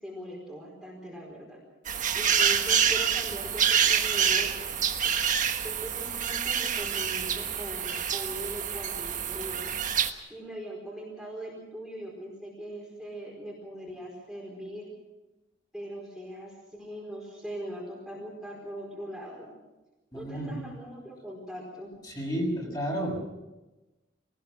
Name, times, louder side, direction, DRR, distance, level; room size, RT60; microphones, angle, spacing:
voice 1, 0.0-1.6 2.1-4.7 5.0-5.2 5.6-9.7 10.3-14.9 15.7-19.5 20.1-21.9, equal, ahead, -4 dB, 4.7 m, -40 dB
sound 1, 1.9-10.1, right 8 dB, 45° right, 1.3 m, -27 dB
voice 2, 20.1-20.7 22.1-23.2, equal, 20° left, -1 dB, 6.7 m, -31 dB
24.0 x 19.0 x 6.3 m, 1.1 s
head